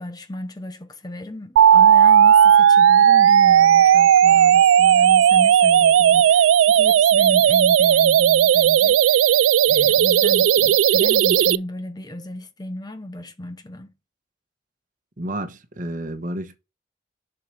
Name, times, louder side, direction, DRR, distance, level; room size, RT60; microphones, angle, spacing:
voice 1, 0.0-13.9, left 1 dB, 20° left, 0.7 m, -34 dB
sound 1, 1.6-11.6, right 9 dB, 85° right, 0.3 m, -14 dB
voice 2, 15.2-16.6, right 1 dB, 40° right, 1.1 m, -30 dB
7.2 x 4.8 x 4.8 m
head